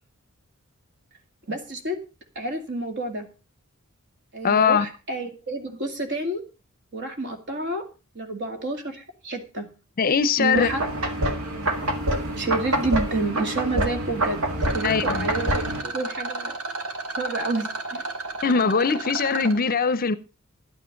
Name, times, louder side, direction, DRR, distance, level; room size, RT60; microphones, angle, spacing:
voice 1, 1.5-2.0 2.4-3.3 4.3-6.4 6.9-7.8 8.1-9.6 10.4-10.8 12.3-14.4 14.7-16.6 17.2-18.0, right 2 dB, 55° right, 2.2 m, -29 dB
voice 2, 4.4-4.9 10.0-10.7 14.8-15.2 18.4-20.1, left 5 dB, 40° left, 0.6 m, -21 dB
sound 1, 10.5-15.8, right 1 dB, 70° right, 2.0 m, -26 dB
Rattle, 14.6-19.6, right 3 dB, 85° right, 2.6 m, -33 dB
11.5 x 9.3 x 5.2 m
head